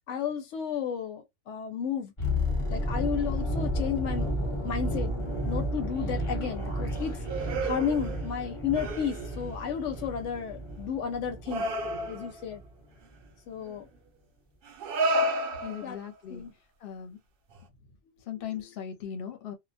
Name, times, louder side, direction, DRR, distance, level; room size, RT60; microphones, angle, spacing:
voice 1, 0.1-2.1 2.7-4.3 4.6-5.1 5.5-7.2 7.6-11.7 12.1-12.6 13.5-13.9 15.8-16.0 16.3-16.5 18.4-18.7, left 7 dB, 85° left, 0.9 m, -33 dB
sound 1, 2.2-12.2 12.4-12.7, equal, 30° left, 0.9 m, -32 dB
sound 2, 5.2-5.8 6.1-8.5 8.7-9.5 9.9-10.3 11.4-12.4 13.6-13.8 14.7-16.2 17.5-17.6, right 1 dB, 60° right, 0.7 m, -33 dB
voice 2, 15.6-16.4 16.8-17.2 18.3-19.5, left 8 dB, 60° left, 0.8 m, -38 dB
2.2 x 2.2 x 2.6 m
omnidirectional pair, 1.2 m